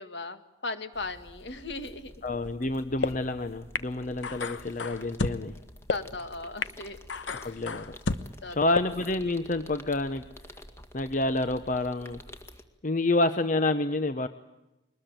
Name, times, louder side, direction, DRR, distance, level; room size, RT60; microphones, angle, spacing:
voice 1, 0.0-2.1 5.9-7.0 7.3-7.6 8.4-8.8, left 3 dB, 65° left, 9 dB, 2.2 m, -37 dB
sound 1, 0.9-12.6, left 1 dB, 15° left, 2.1 m, -50 dB
voice 2, 2.2-5.6 7.4-8.0 8.5-10.3 10.9-12.2 12.8-14.3, left 2 dB, 45° left, 10 dB, 0.9 m, -28 dB
sound 2, 2.4-2.5 3.0-3.1 3.8-3.9 4.2-5.4 5.9-6.0 6.6-6.7 7.1-8.2 8.8-8.9, left 3 dB, 85° left, 1.2 m, -30 dB
23.0 x 20.0 x 9.1 m, 0.97 s
head